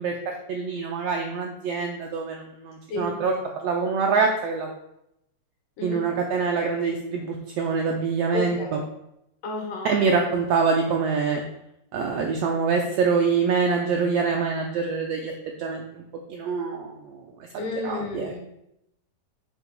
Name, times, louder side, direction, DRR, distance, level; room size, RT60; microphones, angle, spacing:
voice 1, 0.0-3.3 3.6-4.7 5.8-8.8 9.8-11.4 11.9-16.0 16.3-17.2 17.8-18.4, right 5 dB, 80° right, 2 dB, 1.4 m, -25 dB
voice 2, 2.9-3.2 5.8-6.1 8.3-8.9 9.4-10.4 17.6-18.4, left 2 dB, 85° left, 1 dB, 2.9 m, -32 dB
7.5 x 2.9 x 5.2 m, 0.83 s
omnidirectional pair, 3.5 m